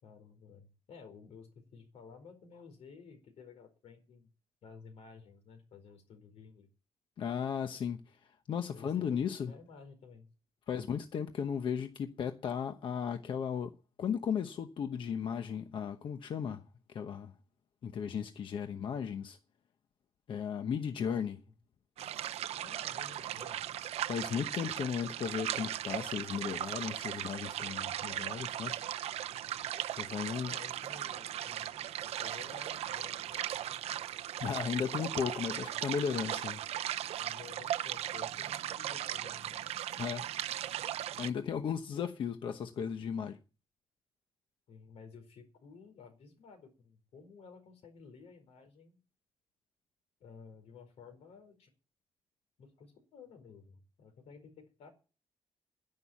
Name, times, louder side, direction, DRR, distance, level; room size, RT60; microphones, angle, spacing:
voice 1, 0.0-4.3 4.6-6.7 8.7-9.2 9.4-10.3 21.1-21.2 22.6-23.6 30.1-34.0 34.8-35.0 35.4-35.8 36.3-36.4 37.2-39.7 44.7-49.0 50.2-51.7 52.6-54.9, left 5 dB, 85° left, 4.6 m, -54 dB
voice 2, 7.2-9.5 10.7-17.3 17.8-19.4 20.3-21.4 24.0-28.8 30.0-30.6 34.4-36.6 40.0-40.3 41.1-43.4, left 7 dB, 55° left, 1.0 m, -36 dB
sound 1, 22.0-41.3, right 11 dB, 90° right, 0.6 m, -38 dB
11.0 x 10.5 x 7.2 m
wide cardioid pair, 180°, 10 cm